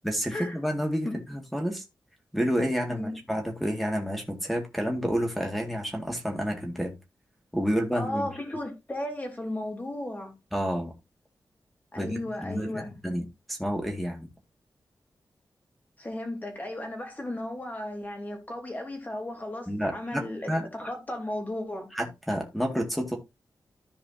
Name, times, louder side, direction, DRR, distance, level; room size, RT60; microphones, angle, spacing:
voice 1, 0.0-1.8 2.3-7.0 7.5-8.3 10.5-10.9 11.9-14.3 19.7-20.7 21.9-23.2, equal, ahead, 2.0 m, -29 dB
voice 2, 7.9-10.3 11.9-12.9 16.0-21.9, left 1 dB, 25° left, 3.2 m, -35 dB
14.0 x 4.8 x 2.7 m
wide cardioid pair, 125°, 7 cm